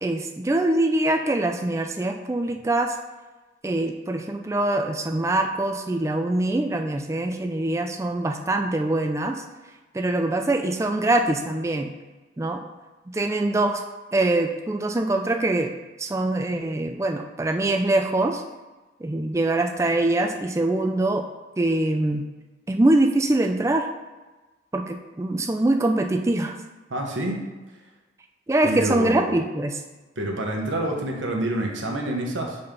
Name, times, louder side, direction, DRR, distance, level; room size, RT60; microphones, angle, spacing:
voice 1, 0.0-2.9 3.6-9.4 9.9-11.9 12.4-12.6 13.1-13.8 14.1-15.7 16.0-18.4 19.0-21.3 21.6-22.3 22.7-23.9 24.7-26.6 28.5-29.8, right 2 dB, 15° right, 5 dB, 0.3 m, -23 dB
voice 2, 26.9-27.4 28.6-29.3 30.2-32.6, right 1 dB, 85° right, 1 dB, 1.1 m, -27 dB
5.4 x 4.3 x 5.3 m, 1.2 s
head